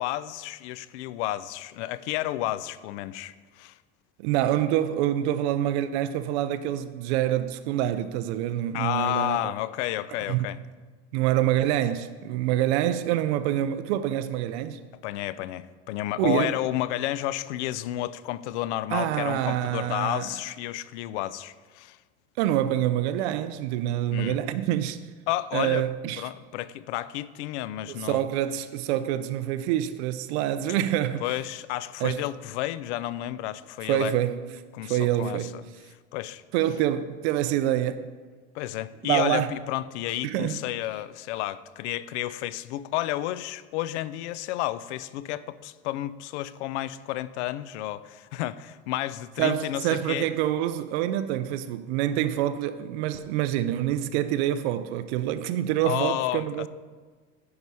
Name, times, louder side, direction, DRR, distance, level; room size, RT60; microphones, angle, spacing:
voice 1, 0.0-3.7 8.7-10.6 15.0-22.0 24.1-24.4 25.3-25.9 26.2-28.3 31.2-34.1 34.7-35.6 36.1-36.4 38.5-50.3 55.8-56.7, left 15 dB, 85° left, 0.5 m, -31 dB
voice 2, 4.2-9.5 10.3-10.5 11.1-14.8 16.2-16.6 18.9-20.3 22.4-25.0 25.5-26.2 27.9-31.3 32.0-32.2 33.9-34.4 34.8-35.5 36.5-38.1 39.0-39.5 40.2-40.6 49.4-56.7, right 12 dB, 75° right, 0.5 m, -26 dB
9.6 x 4.8 x 5.5 m
supercardioid pair, 145°, 33 cm